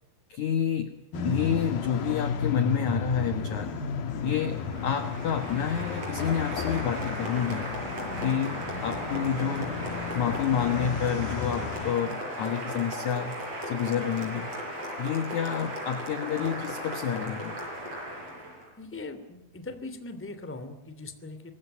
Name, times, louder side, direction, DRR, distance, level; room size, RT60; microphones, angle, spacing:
voice 1, 0.3-3.8 4.2-7.7 8.2-9.8 10.1-13.4 13.6-14.5 15.0-17.6, left 8 dB, 75° left, 9 dB, 1.7 m, -29 dB
sound 1, 1.1-11.9, left 5 dB, 55° left, 3.5 m, -34 dB
Applause, 4.2-18.7, equal, 30° right, 8.3 m, -37 dB
voice 2, 18.8-21.5, left 3 dB, 5° left, 9 dB, 1.5 m, -40 dB
25.5 x 21.5 x 9.0 m, 0.87 s
omnidirectional pair, 5.4 m